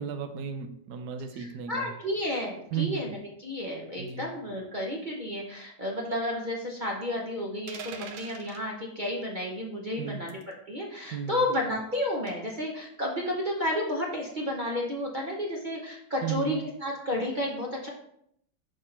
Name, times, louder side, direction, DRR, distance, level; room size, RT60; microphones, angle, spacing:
voice 1, 0.0-1.9 2.7-3.0 4.0-4.2 10.0-10.2 11.1-11.4 16.2-16.5, right 7 dB, 70° right, 7 dB, 1.3 m, -34 dB
voice 2, 1.3-10.4 10.7-17.9, left 1 dB, 35° right, -4 dB, 0.9 m, -32 dB
sound 1, 7.7-8.7 10.3-10.5 12.3-12.6, right 6 dB, 90° right, 1.4 m, -42 dB
6.4 x 4.3 x 4.4 m, 0.72 s
omnidirectional pair, 1.9 m